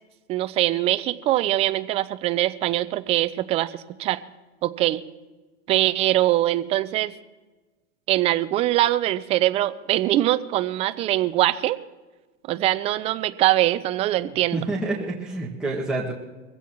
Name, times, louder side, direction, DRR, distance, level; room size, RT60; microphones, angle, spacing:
voice 1, 0.3-4.2 4.6-5.0 5.7-7.1 8.1-11.8 12.5-14.6, right 15 dB, 20° right, 13 dB, 0.3 m, -22 dB
voice 2, 14.5-16.1, right 2 dB, ahead, -5 dB, 1.8 m, -28 dB
23.0 x 15.5 x 3.0 m, 1.2 s
supercardioid pair, 135°, 35 cm